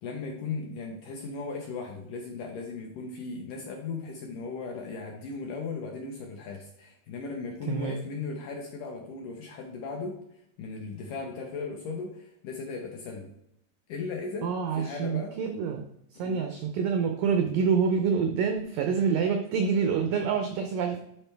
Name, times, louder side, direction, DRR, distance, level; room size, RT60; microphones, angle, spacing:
voice 1, 0.0-10.2 10.6-13.3 13.9-15.4 16.2-16.4, left 4 dB, 75° left, 1 dB, 1.9 m, -37 dB
voice 2, 7.7-8.0 14.4-15.9 16.1-21.0, right 6 dB, 85° right, 5 dB, 1.9 m, -27 dB
11.5 x 4.4 x 3.4 m, 0.77 s
omnidirectional pair, 4.8 m